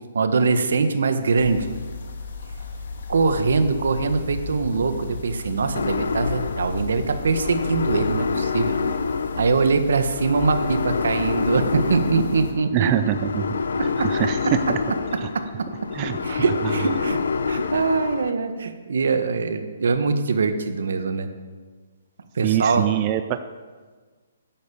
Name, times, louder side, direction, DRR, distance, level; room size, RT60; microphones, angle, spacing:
voice 1, 0.1-1.7 3.1-8.7 9.4-13.1 15.3-15.4 16.2-17.2 17.5-21.3 22.3-22.9, right 4 dB, 75° right, 8 dB, 1.5 m, -22 dB
sound 1, 1.4-12.5, left 4 dB, 65° left, 2.3 m, -36 dB
sound 2, 5.7-18.3, left 5 dB, 80° left, 1.1 m, -27 dB
voice 2, 12.7-13.6 14.1-14.4 14.7-14.8 15.2-15.3 15.9-16.4 16.6-16.7 22.4-23.4, right 12 dB, 25° right, 10 dB, 0.4 m, -24 dB
10.5 x 10.5 x 7.1 m, 1.5 s
hypercardioid pair, 165°, 0 cm